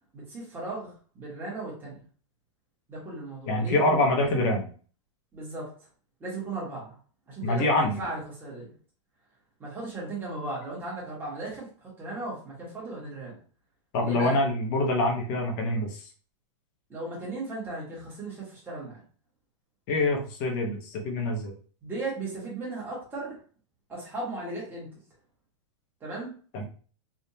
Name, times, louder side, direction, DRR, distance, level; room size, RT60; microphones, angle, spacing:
voice 1, 0.1-2.0 2.9-3.8 5.3-5.7 6.2-6.9 7.3-8.7 9.6-13.4 14.0-14.4 16.9-19.0 20.1-20.2 21.8-23.4 23.9-24.9 26.0-26.3, right 2 dB, 15° right, -5 dB, 1.5 m, -36 dB
voice 2, 3.5-4.6 7.4-8.0 13.9-16.0 19.9-21.5 26.5-26.6, left 2 dB, 40° left, 0 dB, 1.0 m, -25 dB
3.5 x 2.7 x 2.8 m, 0.41 s
supercardioid pair, 155°, 16 cm